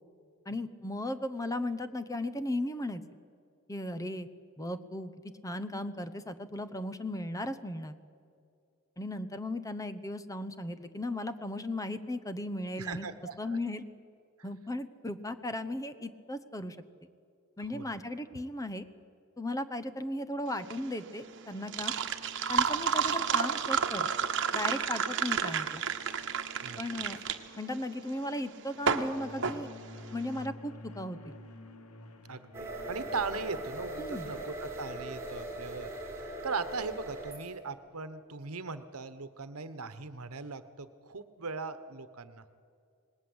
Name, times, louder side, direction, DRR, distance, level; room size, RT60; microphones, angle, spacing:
voice 1, 0.5-3.0 3.7-4.3 4.6-5.1 5.4-8.0 9.0-13.1 13.4-13.8 14.4-16.8 17.6-18.9 19.4-21.9 22.5-24.1 24.5-25.8 26.8-27.2 27.6-29.7 30.1-31.3 34.0-34.3, left 1 dB, 15° left, 11 dB, 0.9 m, -36 dB
voice 2, 12.8-13.6 17.7-18.0 26.6-26.8 32.3-35.9 36.4-42.4, right 4 dB, 75° right, 12 dB, 1.2 m, -39 dB
sound 1, 20.5-30.4, right 6 dB, 55° right, 1.3 m, -31 dB
sound 2, 28.7-35.3, left 1 dB, 85° left, 1.7 m, -50 dB
sound 3, 32.5-37.5, right 1 dB, 10° right, 4.4 m, -40 dB
26.5 x 19.5 x 8.0 m, 2.3 s
head